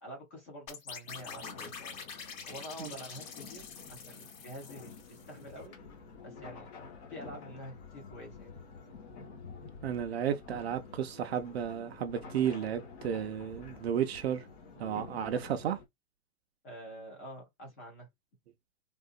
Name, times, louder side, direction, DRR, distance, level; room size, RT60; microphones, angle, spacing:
voice 1, 0.0-2.1 2.5-5.8 6.2-6.7 7.1-8.6 16.6-18.1, equal, 10° left, 0.4 m, -47 dB
sound 1, 0.7-5.5, left 6 dB, 60° left, 2.2 m, -46 dB
sound 2, 1.1-15.8, left 4 dB, 40° left, 1.5 m, -49 dB
voice 2, 9.8-14.4 14.8-15.8, right 9 dB, 40° right, 0.6 m, -33 dB
3.7 x 2.5 x 2.4 m
hypercardioid pair, 145°, 47 cm